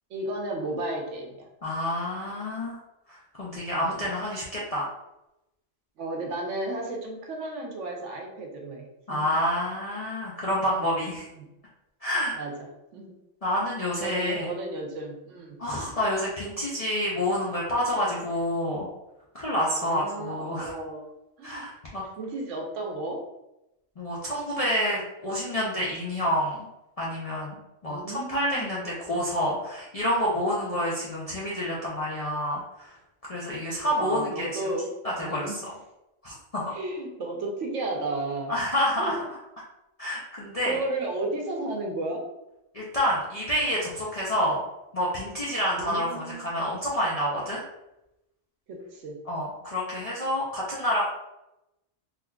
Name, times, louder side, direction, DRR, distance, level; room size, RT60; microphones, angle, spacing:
voice 1, 0.1-1.5 3.5-4.1 6.0-9.3 11.3-11.5 12.3-12.5 12.9-13.2 14.0-15.6 19.7-21.1 21.4-21.7 22.2-23.3 27.9-29.0 33.8-35.6 36.7-38.5 39.0-39.3 40.6-42.3 45.7-46.4 48.7-49.2, right 2 dB, 70° right, 1 dB, 1.0 m, -33 dB
voice 2, 1.6-2.8 3.1-4.9 9.1-11.3 12.0-12.4 13.4-14.5 15.6-18.9 19.3-20.7 21.4-22.0 24.0-26.6 27.0-33.0 33.3-34.5 35.0-35.5 36.2-36.7 38.5-39.2 40.0-40.8 42.7-44.6 44.9-47.6 49.3-51.1, equal, 45° left, -7 dB, 0.4 m, -28 dB
3.7 x 2.8 x 2.2 m, 0.91 s
omnidirectional pair, 1.4 m